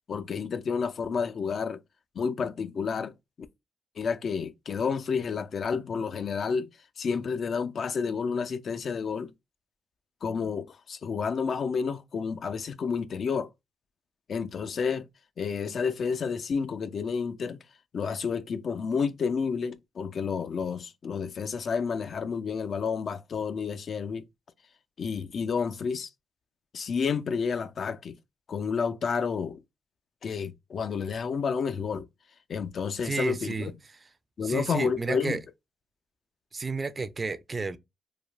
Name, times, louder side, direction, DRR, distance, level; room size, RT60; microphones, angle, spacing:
voice 1, 0.1-1.8 2.2-3.1 4.0-6.7 7.0-9.3 10.2-13.5 14.3-15.1 15.4-17.6 17.9-24.2 25.0-26.1 26.7-28.2 28.5-29.6 30.2-32.1 32.5-33.7 34.4-35.4, left 5 dB, 60° left, 0.3 m, -30 dB
voice 2, 33.0-33.7 34.4-35.4 36.5-37.8, right 4 dB, 35° right, 0.4 m, -31 dB
3.2 x 2.1 x 2.4 m
supercardioid pair, 55°, 0 cm